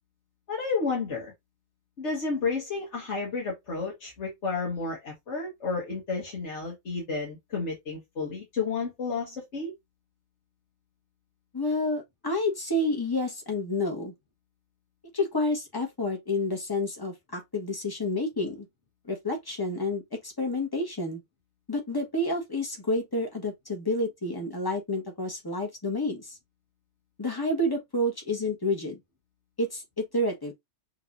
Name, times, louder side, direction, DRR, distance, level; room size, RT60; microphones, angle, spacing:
voice 1, 0.5-1.3 2.0-9.7, left 4 dB, 75° left, 1.8 m, -31 dB
voice 2, 11.5-14.1 15.1-18.7 19.0-21.2 21.7-26.4 27.2-29.0 29.6-30.5, left 1 dB, 20° left, 1.2 m, -29 dB
5.7 x 3.2 x 2.5 m
omnidirectional pair, 1.2 m